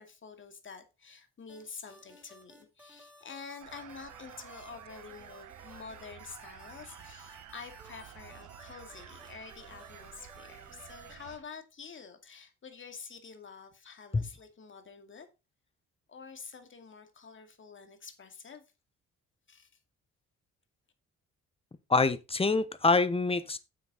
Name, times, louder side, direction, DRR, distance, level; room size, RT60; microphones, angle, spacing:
voice 1, 0.0-15.3 16.1-18.6 19.5-19.7, left 5 dB, 40° left, 2.3 m, -48 dB
sound 1, 1.5-11.1, equal, 5° right, 4.9 m, -57 dB
sound 2, 3.6-11.4, right 10 dB, 75° right, 1.4 m, -51 dB
voice 2, 21.9-23.6, left 3 dB, 20° left, 1.0 m, -25 dB
9.3 x 7.5 x 4.1 m
cardioid pair, 90°, 30 cm